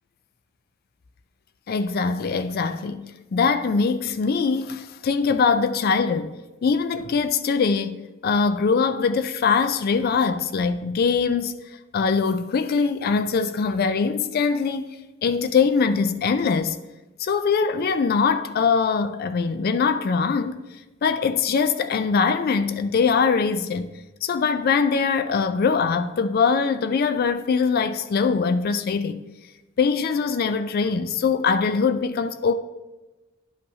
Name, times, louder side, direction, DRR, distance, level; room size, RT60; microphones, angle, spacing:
voice 1, 1.7-6.3 6.6-11.5 11.9-14.9 15.2-16.8 17.2-20.6 21.0-23.9 24.2-29.2 29.8-32.5, left 5 dB, 50° left, 0.3 m, -22 dB
11.5 x 5.4 x 2.7 m
head